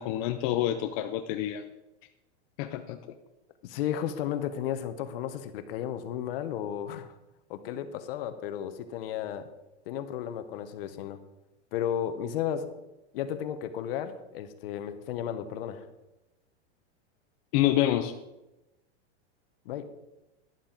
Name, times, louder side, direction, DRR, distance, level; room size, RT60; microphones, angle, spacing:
voice 1, 0.0-1.6 2.6-3.0 17.5-18.1, left 13 dB, 30° left, 6 dB, 0.5 m, -27 dB
voice 2, 3.6-7.2 7.5-9.5 9.9-11.2 11.7-12.7 13.1-15.9 19.6-19.9, left 10 dB, 55° left, 10 dB, 1.1 m, -33 dB
11.5 x 11.0 x 4.0 m, 0.97 s
supercardioid pair, 170°, 34 cm